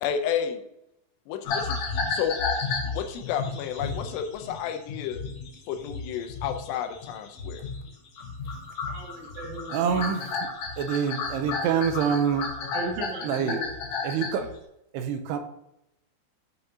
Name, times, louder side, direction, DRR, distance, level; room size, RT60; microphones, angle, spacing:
voice 1, 0.0-0.6 1.3-1.8 2.1-2.4 2.9-5.2 5.7-7.7, left 8 dB, 90° left, 7 dB, 2.8 m, -31 dB
sound 1, 1.4-7.9 8.2-14.5, left 4 dB, 65° left, 1.9 m, -32 dB
voice 2, 8.9-10.1 12.7-13.6, right 2 dB, 65° right, -1 dB, 2.8 m, -36 dB
voice 3, 9.7-10.5 10.8-12.5 13.2-13.6 14.0-14.5 14.9-15.4, right 7 dB, 80° right, 7 dB, 2.5 m, -26 dB
7.8 x 5.6 x 2.7 m, 0.84 s
omnidirectional pair, 4.9 m